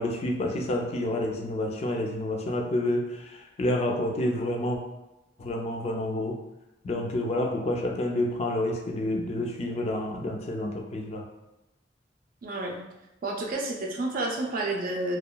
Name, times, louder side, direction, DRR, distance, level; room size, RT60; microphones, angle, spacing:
voice 1, 0.0-4.8 5.4-6.4 6.8-11.2, left 1 dB, 35° left, 1 dB, 0.3 m, -29 dB
voice 2, 12.4-12.8 13.2-15.2, right 2 dB, 50° right, 0 dB, 0.4 m, -30 dB
2.9 x 2.2 x 2.2 m, 0.98 s
head